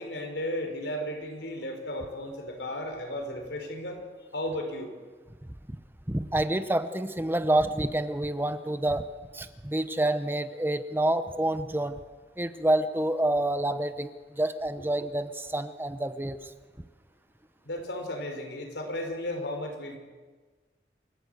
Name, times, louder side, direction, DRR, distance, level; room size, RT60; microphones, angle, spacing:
voice 1, 0.0-4.0 4.3-4.9 17.6-20.0, left 1 dB, 85° left, 3 dB, 5.1 m, -34 dB
voice 2, 6.1-9.1 9.3-12.0 12.4-16.5, right 1 dB, 10° right, 11 dB, 0.7 m, -28 dB
28.0 x 14.5 x 8.1 m, 1.4 s
head